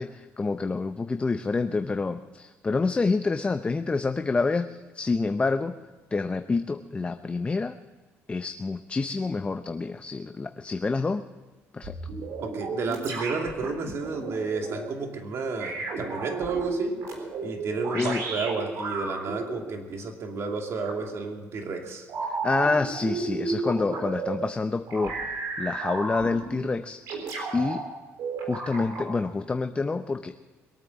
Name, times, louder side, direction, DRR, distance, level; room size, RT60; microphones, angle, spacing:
voice 1, 0.0-5.7 6.1-7.8 8.3-11.2 11.7-11.9 17.9-18.2 22.3-25.2 25.6-27.0 27.5-27.8 28.5-30.3, left 3 dB, 20° left, 8 dB, 0.6 m, -27 dB
sound 1, 11.8-14.8 15.6-19.6 20.8-21.0 22.1-24.4 24.9-26.6 27.1-27.8 28.2-29.1, right 3 dB, 70° right, 3.6 m, -33 dB
voice 2, 12.4-17.0 17.4-22.1, right 4 dB, 55° right, 3 dB, 2.5 m, -32 dB
22.0 x 9.0 x 7.1 m, 1.3 s
cardioid pair, 100°, 5 cm